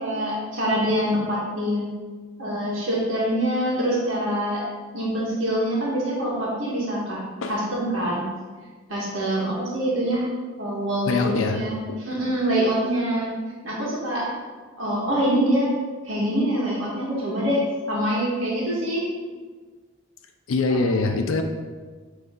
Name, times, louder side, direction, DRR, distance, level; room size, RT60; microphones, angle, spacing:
voice 1, 0.0-1.9 2.4-4.6 4.9-7.2 7.5-8.2 8.9-10.3 10.6-13.3 13.6-14.3 14.8-15.7 16.0-19.0 20.7-20.9, equal, 80° right, -6 dB, 1.7 m, -25 dB
voice 2, 11.1-12.0 20.5-21.4, left 3 dB, 85° left, 4 dB, 0.5 m, -24 dB
9.3 x 3.4 x 3.8 m, 1.4 s
head